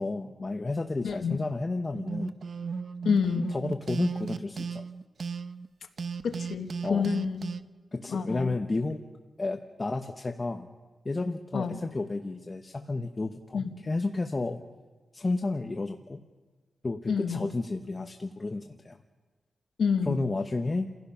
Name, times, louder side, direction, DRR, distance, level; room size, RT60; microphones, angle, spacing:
voice 1, 0.0-2.3 3.5-4.8 6.8-7.1 7.9-9.1 9.4-10.7 11.0-14.6 15.1-16.2 16.8-19.0 20.1-20.9, left 3 dB, 30° left, 5 dB, 1.0 m, -31 dB
voice 2, 1.0-1.4 3.0-3.6 6.2-7.5 8.1-8.6 11.5-11.8 13.5-13.7 17.1-17.5 19.8-20.2, left 6 dB, 85° left, 6 dB, 1.5 m, -28 dB
sound 1, 1.9-5.7 6.0-7.6, right 5 dB, 60° right, 0.7 m, -35 dB
30.0 x 16.0 x 5.7 m, 1.4 s
wide cardioid pair, 100°, 0 cm